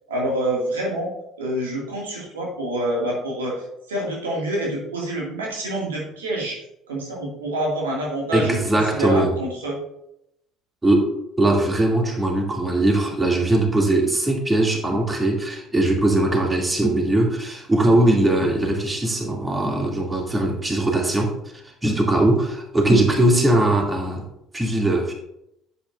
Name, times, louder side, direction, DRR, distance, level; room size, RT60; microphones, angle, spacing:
voice 1, 0.1-1.1 1.4-3.6 3.9-6.6 6.9-9.8, right 1 dB, 85° right, -3 dB, 2.3 m, -27 dB
voice 2, 8.3-9.3 10.8-21.3 21.8-24.2 24.5-25.1, right 1 dB, 20° right, 0 dB, 2.7 m, -20 dB
10.0 x 8.4 x 2.6 m, 0.79 s
hypercardioid pair, 55°, 0 cm